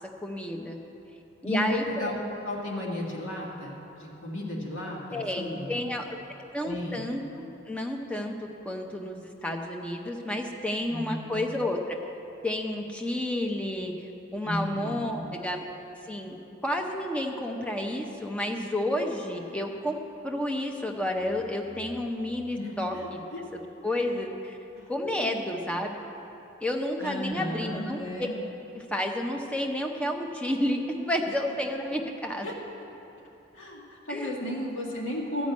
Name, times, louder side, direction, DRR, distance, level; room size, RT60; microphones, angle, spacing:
voice 1, 0.2-0.8 1.4-2.1 5.1-6.2 6.5-8.3 8.6-12.0 12.4-15.6 16.0-16.4 16.6-23.2 23.5-24.6 24.9-26.0 26.6-28.0 28.7-32.5 34.1-34.3, left 1 dB, 5° left, 2 dB, 0.7 m, -31 dB
voice 2, 1.4-2.2 2.4-5.9 6.6-7.0 10.9-11.4 14.4-15.3 22.5-23.4 24.7-24.9 25.2-25.4 27.0-28.4 32.4-32.5 33.5-35.5, left 1 dB, 85° left, -3 dB, 2.1 m, -34 dB
sound 1, 20.6-24.3, left 2 dB, 30° left, 1.2 m, -55 dB
13.0 x 5.3 x 8.5 m, 2.9 s
head